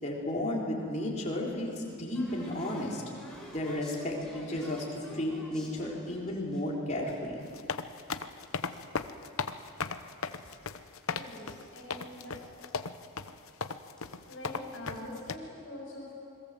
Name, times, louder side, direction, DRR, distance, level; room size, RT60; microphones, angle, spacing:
voice 1, 0.0-3.0 3.5-7.4, left 1 dB, 30° left, -3 dB, 4.2 m, -33 dB
sound 1, 1.9-6.6 7.1-8.8 9.1-9.9 10.1-11.5 11.8-11.9 12.1-12.4 12.7-12.8 13.6-13.7 14.0-14.2 14.8-15.0, equal, 5° left, 4.6 m, -50 dB
sound 2, 7.4-15.4, left 5 dB, 70° left, 0.9 m, -36 dB
voice 2, 11.0-12.6 14.3-16.1, left 1 dB, 55° left, -3 dB, 6.3 m, -44 dB
28.5 x 21.5 x 7.8 m, 2.6 s
head